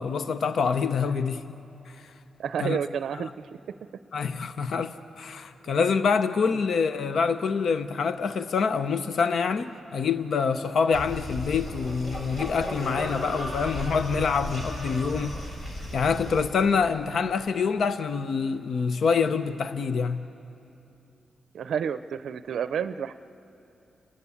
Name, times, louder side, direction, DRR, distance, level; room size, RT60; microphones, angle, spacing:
voice 1, 0.0-1.6 1.9-2.1 2.6-2.8 3.2-3.3 4.1-15.4 15.9-20.2, left 5 dB, 60° left, 0.6 m, -26 dB
voice 2, 2.4-3.3 3.7-3.8 21.5-23.1, right 8 dB, 75° right, 0.5 m, -30 dB
sound 1, 10.9-16.4, equal, 45° left, 7.0 m, -35 dB
29.5 x 19.0 x 8.5 m
wide cardioid pair, 135°, 0 cm